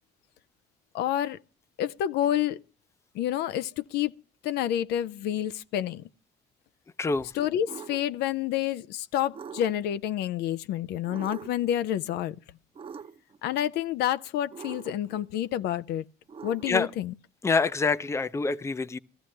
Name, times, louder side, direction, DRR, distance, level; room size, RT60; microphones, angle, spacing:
voice 1, 0.9-1.4 1.8-2.6 3.1-4.1 4.4-6.0 7.3-12.4 13.4-16.0 16.4-17.1, left 11 dB, 75° left, 0.6 m, -28 dB
voice 2, 7.0-7.3 16.7-16.9 17.4-19.0, left 4 dB, 15° left, 0.6 m, -26 dB
sound 1, 7.7-8.1 9.3-10.0 11.1-11.7 12.8-13.4 14.5-15.2 16.3-17.0, right 6 dB, 35° right, 0.8 m, -43 dB
16.5 x 13.5 x 3.3 m
cardioid pair, 110°, 17 cm